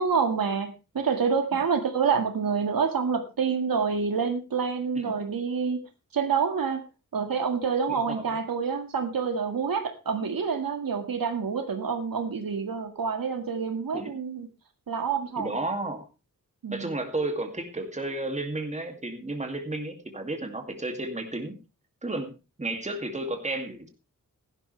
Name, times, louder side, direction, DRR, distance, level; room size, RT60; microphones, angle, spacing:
voice 1, 0.0-5.8 6.1-6.9 7.1-14.5 14.9-15.6 16.6-16.9, right 6 dB, 85° right, 6 dB, 2.0 m, -27 dB
voice 2, 7.9-8.3 13.9-14.1 15.4-16.1 16.7-21.6 22.0-22.3 22.6-23.9, right 2 dB, 20° right, 4 dB, 2.4 m, -32 dB
16.0 x 11.5 x 3.3 m, 0.29 s
wide cardioid pair, 120°, 34 cm